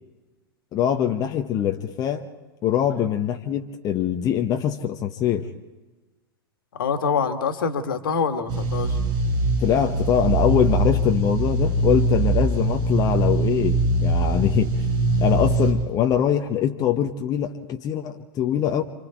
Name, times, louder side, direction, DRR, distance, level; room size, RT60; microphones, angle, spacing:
voice 1, 0.7-2.2 2.6-5.5 9.6-14.7 15.2-18.8, left 9 dB, 30° left, 4 dB, 1.2 m, -23 dB
voice 2, 6.7-9.0, left 6 dB, 60° left, 7 dB, 2.1 m, -25 dB
sound 1, 8.5-15.7, right 2 dB, 35° right, 5.4 m, -22 dB
28.5 x 26.0 x 4.6 m, 1.2 s
figure-of-eight pair, 95°, 13 cm